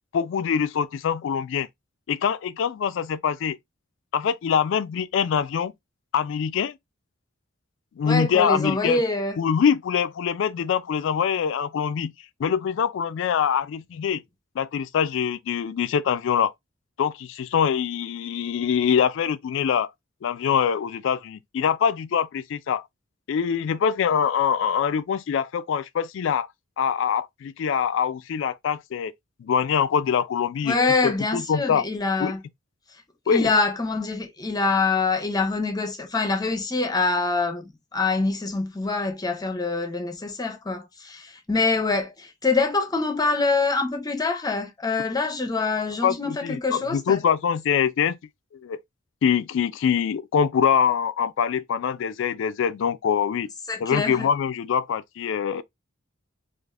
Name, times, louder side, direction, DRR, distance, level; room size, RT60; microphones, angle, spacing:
voice 1, 0.1-1.7 2.1-3.6 4.1-5.7 6.1-6.8 8.0-9.0 9.4-12.1 12.4-14.2 14.6-16.5 17.0-19.9 20.2-22.8 23.3-26.5 26.8-29.1 29.4-30.8 31.0-31.8 32.2-32.3 33.3-33.5 46.0-48.2 48.5-48.8 49.2-53.5 53.8-55.6, left 7 dB, 70° left, 0.3 m, -24 dB
voice 2, 8.0-9.4 30.6-32.4 33.3-47.2 53.7-54.3, left 3 dB, 20° left, 0.6 m, -25 dB
3.3 x 2.4 x 2.3 m
head